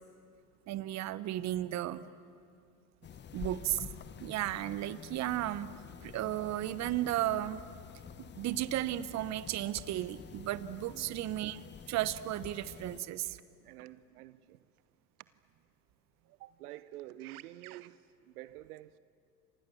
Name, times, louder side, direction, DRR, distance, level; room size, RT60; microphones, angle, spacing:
voice 1, 0.7-2.0 3.3-3.9 4.2-5.7 6.0-7.6 8.4-11.6 11.9-13.4, right 14 dB, 35° right, 1.0 m, -34 dB
sound 1, 3.0-13.0, left 7 dB, 20° left, 1.2 m, -49 dB
voice 2, 13.6-14.7 16.4-19.0, right 15 dB, 65° right, 0.9 m, -48 dB
29.5 x 25.5 x 7.1 m
hypercardioid pair, 95°, 49 cm